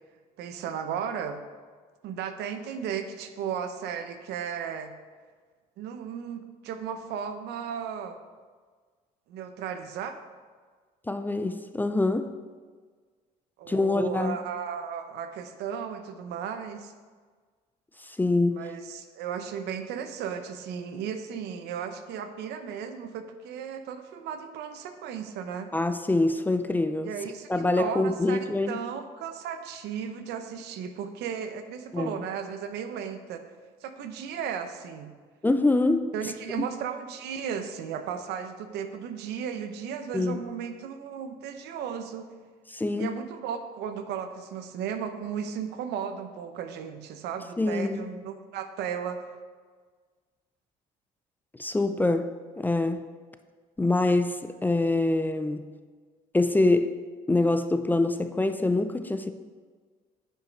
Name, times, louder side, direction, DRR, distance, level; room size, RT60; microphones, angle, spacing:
voice 1, 0.4-1.4 2.0-4.9 5.8-8.2 9.3-10.2 13.6-16.9 18.5-25.7 27.0-27.5 27.8-33.4 33.8-35.1 36.1-42.3 43.0-49.3, right 7 dB, 80° right, 0.8 m, -35 dB
voice 2, 11.1-12.3 13.7-14.4 18.0-18.6 25.7-27.1 27.5-28.8 31.9-32.2 35.4-36.1 36.6-36.7 40.1-40.4 42.7-43.1 47.6-48.0 51.6-52.3 52.6-53.0 53.8-55.7 56.3-57.0 57.3-59.3, left 2 dB, 10° left, 0.4 m, -25 dB
8.9 x 5.3 x 5.2 m
cardioid pair, 110°, 17 cm